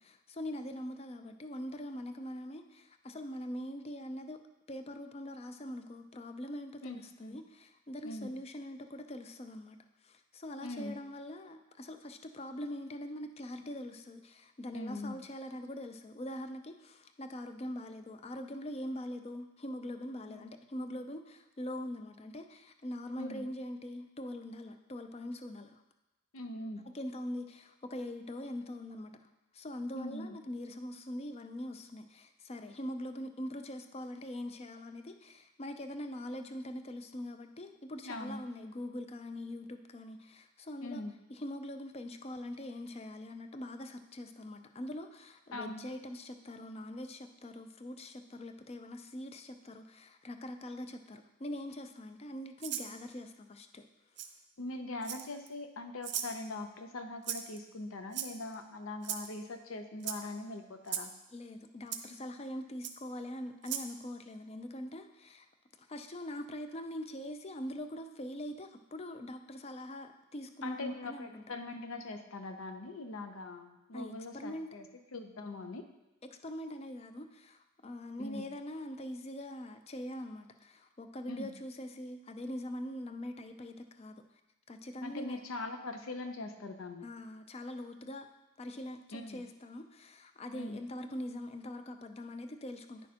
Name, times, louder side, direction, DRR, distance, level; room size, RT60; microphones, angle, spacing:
voice 1, 0.0-4.4 4.7-9.8 10.0-25.8 26.9-41.0 41.3-53.8 61.3-65.5 65.8-71.4 72.0-72.1 73.9-74.8 76.3-84.2 84.7-85.4 87.0-88.3 88.6-93.0, left 1 dB, 30° left, 7 dB, 0.4 m, -43 dB
voice 2, 6.8-7.4 8.0-8.3 10.6-11.0 14.7-15.2 20.3-20.5 23.2-23.5 26.3-26.9 29.9-30.4 38.0-38.4 40.8-41.2 45.5-45.8 54.6-61.1 70.6-75.8 78.2-78.5 81.3-81.5 85.0-87.1 89.1-89.4 90.5-90.8, left 2 dB, 80° left, 7 dB, 0.7 m, -42 dB
Rattle (instrument), 52.6-52.9 54.2-54.3 55.0-55.5 56.0-56.3 57.2-57.6 58.1-58.5 59.0-59.3 60.0-60.2 60.9-61.1 61.9-62.0 62.8-62.9 63.6-63.9, right 9 dB, 55° right, 0.6 m, -37 dB
9.6 x 6.3 x 2.9 m, 0.98 s
head